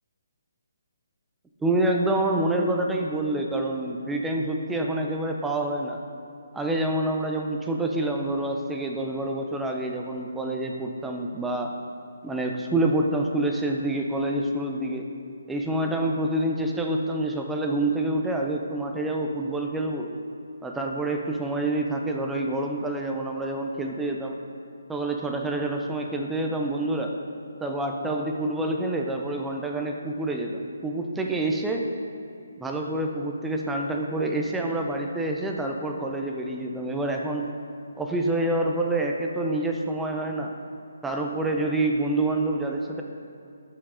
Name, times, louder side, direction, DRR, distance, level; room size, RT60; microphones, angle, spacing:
voice 1, 1.6-6.0 6.5-11.7 12.2-15.1 15.5-20.1 20.6-24.4 24.9-27.1 27.6-31.9 32.6-37.6 38.0-40.5 41.0-43.0, right 1 dB, 5° right, 1 dB, 0.3 m, -27 dB
13.0 x 4.8 x 3.6 m, 2.5 s
hypercardioid pair, 175°, 0 cm